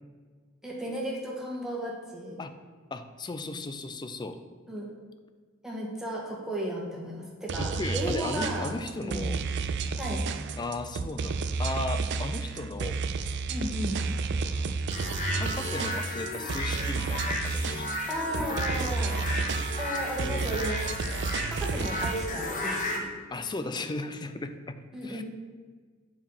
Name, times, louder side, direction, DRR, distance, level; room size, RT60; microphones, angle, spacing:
voice 1, 0.6-2.4 4.7-4.9 5.6-8.7 9.0-9.3 10.0-10.2 13.5-14.0 18.1-19.2 19.8-20.9 21.5-23.1 24.9-25.2, equal, 5° right, -3 dB, 1.4 m, -34 dB
voice 2, 2.9-4.4 7.6-9.4 10.6-13.0 15.3-17.9 18.4-19.3 23.3-25.2, left 2 dB, 20° left, 10 dB, 0.4 m, -36 dB
sound 1, 7.5-22.3, right 4 dB, 55° right, 0.4 m, -31 dB
sound 2, 14.9-23.0, left 2 dB, 40° left, 1.1 m, -34 dB
7.3 x 4.6 x 5.5 m, 1.5 s
head